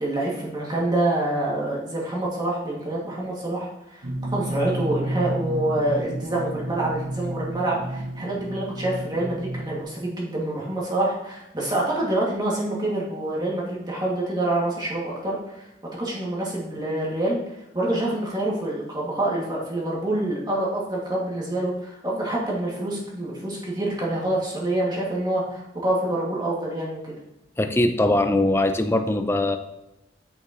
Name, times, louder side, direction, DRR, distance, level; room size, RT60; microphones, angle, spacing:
voice 1, 0.0-4.1 4.3-15.7 16.0-17.4 17.7-27.1, right 1 dB, 25° right, -4 dB, 2.2 m, -26 dB
sound 1, 4.0-9.8, right 1 dB, 60° right, 0.8 m, -31 dB
voice 2, 27.6-29.6, left 1 dB, 15° left, 7 dB, 0.5 m, -21 dB
8.7 x 6.3 x 3.1 m, 0.88 s
head